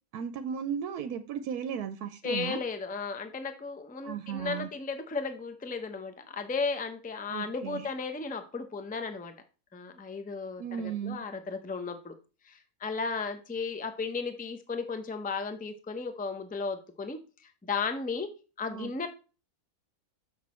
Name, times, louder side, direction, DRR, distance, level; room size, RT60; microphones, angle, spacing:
voice 1, 0.1-2.6 4.0-4.7 7.3-7.9 10.6-11.2 18.7-19.1, right 8 dB, 85° right, 9 dB, 1.1 m, -35 dB
voice 2, 2.2-9.3 9.7-12.1 12.4-18.3 18.6-19.1, left 4 dB, 10° left, 8 dB, 0.4 m, -35 dB
6.7 x 6.2 x 4.2 m, 0.34 s
omnidirectional pair, 1.6 m